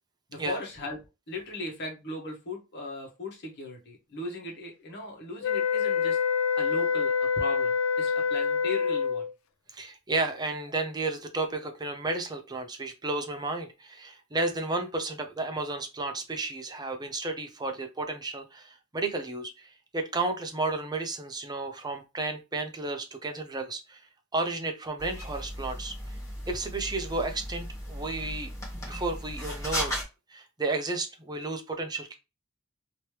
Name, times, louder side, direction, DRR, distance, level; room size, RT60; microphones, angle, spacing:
voice 1, 0.3-1.0 1.3-6.2 6.6-9.3, left 2 dB, 55° left, 0 dB, 1.3 m, -37 dB
sound 1, 5.4-9.3, left 6 dB, 85° left, 0.4 m, -26 dB
voice 2, 9.7-19.7 19.9-24.0 24.3-25.9 26.5-28.5 28.9-29.9 30.3-32.1, right 3 dB, 20° right, 5 dB, 0.7 m, -32 dB
sound 2, 25.0-30.0, equal, 15° left, 1.3 m, -36 dB
3.1 x 2.9 x 3.1 m, 0.27 s
head